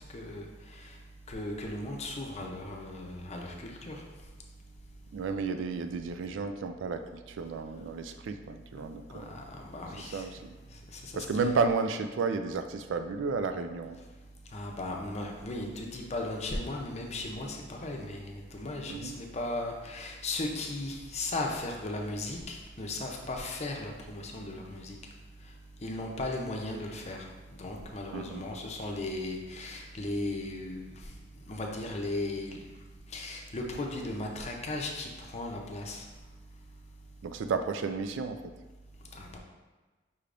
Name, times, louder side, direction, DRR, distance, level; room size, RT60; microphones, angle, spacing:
voice 1, 0.1-0.5 1.3-4.0 8.7-8.8 9.1-10.2 10.9-11.5 14.5-25.0 25.8-27.2 27.6-30.9 31.5-32.6 33.1-36.0 39.1-39.4, left 2 dB, 35° left, 1 dB, 0.6 m, -36 dB
voice 2, 5.1-9.3 10.0-10.5 11.1-14.0 18.9-19.2 28.1-28.4 37.2-38.4, right 4 dB, 75° right, 8 dB, 0.4 m, -32 dB
5.5 x 3.3 x 2.5 m, 1.3 s
head